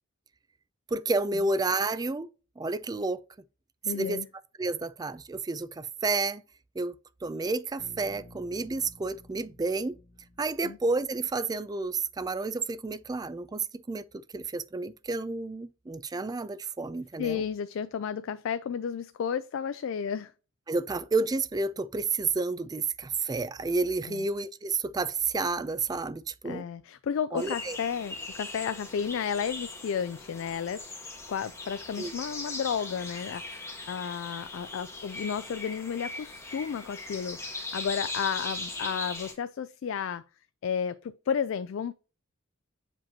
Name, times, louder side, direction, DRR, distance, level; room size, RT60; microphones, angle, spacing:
voice 1, 0.9-2.3 2.6-3.2 3.9-4.2 4.6-6.4 6.8-6.9 7.2-10.0 10.4-17.4 20.7-26.7 27.3-27.8 32.0-32.1, right 3 dB, 20° right, 0.3 m, -30 dB
voice 2, 3.8-4.3 10.6-10.8 17.2-20.3 24.1-24.2 26.4-30.8 31.3-40.2 40.6-41.9, left 7 dB, 65° left, 0.3 m, -32 dB
Bass guitar, 7.8-11.8, left 1 dB, 85° left, 2.2 m, -54 dB
sound 1, 27.4-39.3, left 2 dB, 15° left, 1.4 m, -39 dB
7.3 x 5.1 x 2.8 m
head